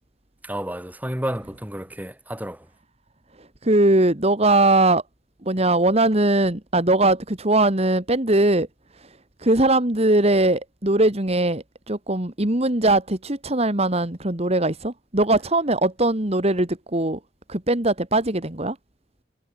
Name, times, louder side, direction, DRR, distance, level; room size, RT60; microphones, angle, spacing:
voice 1, 0.4-2.7, right 1 dB, 10° right, 2.5 m, -31 dB
voice 2, 3.6-5.0 5.5-8.7 9.0-9.1 9.4-17.2 17.5-18.8, right 2 dB, 35° right, 2.1 m, -20 dB
head